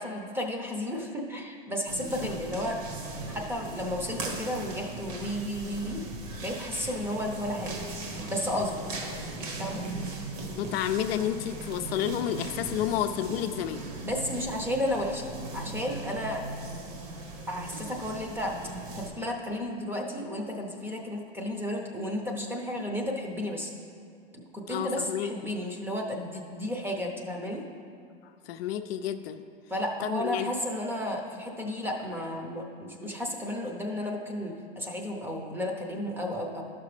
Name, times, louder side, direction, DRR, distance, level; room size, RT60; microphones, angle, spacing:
voice 1, 0.0-2.8 3.3-6.0 6.4-7.7 8.3-8.8 9.4-9.8 14.0-16.4 17.5-18.6 19.0-23.7 24.3-27.6 29.7-36.6, left 1 dB, 5° right, 1 dB, 0.7 m, -33 dB
sound 1, 1.9-19.1, right 2 dB, 50° right, 1.3 m, -39 dB
voice 2, 10.6-13.8 24.7-25.3 28.5-29.4 30.0-30.5, left 10 dB, 70° left, 8 dB, 0.6 m, -30 dB
11.5 x 6.0 x 3.3 m, 2.4 s
supercardioid pair, 130°, 31 cm